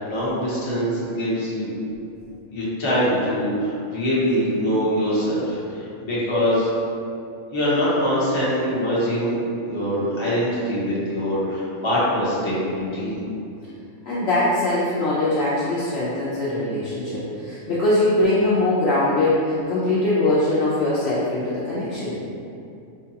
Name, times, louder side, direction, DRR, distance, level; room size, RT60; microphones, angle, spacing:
voice 1, 0.0-1.7 2.5-6.7 7.5-9.4 9.7-13.2, equal, 25° left, -9 dB, 0.7 m, -23 dB
voice 2, 14.0-22.2, left 2 dB, 60° left, -8 dB, 0.7 m, -22 dB
4.5 x 2.3 x 2.8 m, 2.6 s
omnidirectional pair, 1.4 m